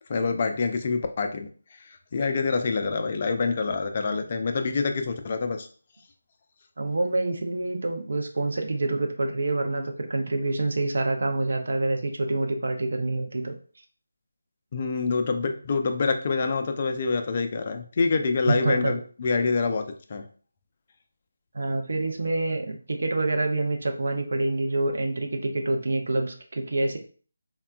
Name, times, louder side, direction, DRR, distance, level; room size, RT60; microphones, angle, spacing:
voice 1, 0.1-1.5 1.9-5.7 14.7-20.3, left 4 dB, 35° left, 6 dB, 0.3 m, -26 dB
voice 2, 6.8-13.5 18.5-19.0 21.5-27.0, right 2 dB, 60° right, 4 dB, 0.5 m, -27 dB
3.5 x 2.2 x 2.3 m, 0.41 s
figure-of-eight pair, 155°, 0 cm